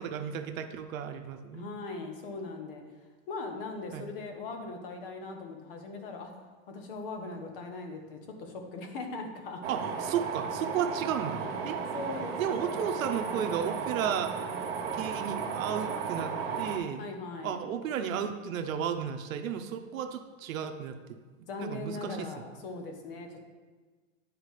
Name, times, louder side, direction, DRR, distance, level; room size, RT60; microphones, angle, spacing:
voice 1, 0.0-1.7 3.9-4.1 9.7-11.8 12.4-14.5 14.9-17.1 17.4-21.2 21.6-22.3, right 8 dB, 90° right, 7 dB, 0.8 m, -34 dB
voice 2, 1.5-2.8 3.3-6.3 6.7-9.6 11.9-13.9 17.0-17.6 21.5-23.4, left 3 dB, 45° left, 4 dB, 1.0 m, -40 dB
sound 1, 9.6-16.8, right 6 dB, 50° right, 0.7 m, -34 dB
10.0 x 4.9 x 3.2 m, 1.4 s
supercardioid pair, 175°, 39 cm